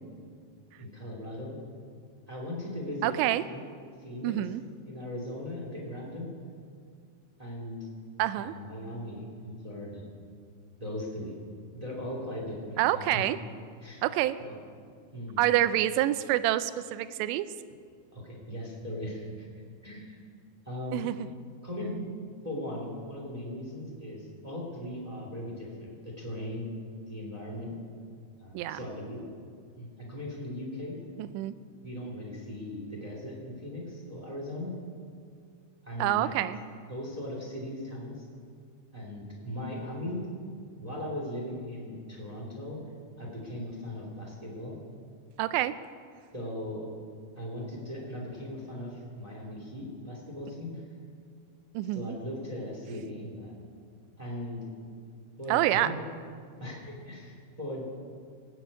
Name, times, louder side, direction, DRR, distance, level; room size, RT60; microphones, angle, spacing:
voice 1, 0.8-1.6 2.3-3.1 3.5-3.7 4.0-4.4 4.8-6.3 7.4-7.9 8.3-10.1 10.8-11.4 11.7-13.2 13.8-14.0 14.4-14.6 15.1-15.4 18.1-19.5 19.8-20.2 20.6-21.1 21.6-22.0 22.4-26.7 27.1-27.7 28.4-29.2 29.7-31.0 31.8-34.7 35.8-36.3 36.9-38.2 38.9-40.3 40.8-42.8 43.2-44.7 46.3-46.9 47.3-50.8 51.9-53.5 54.2-54.6 55.4-56.0 56.6-57.9, left 1 dB, 15° right, -3 dB, 1.3 m, -38 dB
voice 2, 3.0-3.4 4.2-4.6 8.2-8.6 12.8-13.4 14.0-14.4 15.4-17.5 20.9-21.2 28.5-28.8 31.2-31.6 36.0-36.6 45.4-45.7 51.7-52.2 55.5-56.0, right 14 dB, 85° right, 13 dB, 2.6 m, -27 dB
18.5 x 7.4 x 8.4 m, 2.1 s
omnidirectional pair, 5.5 m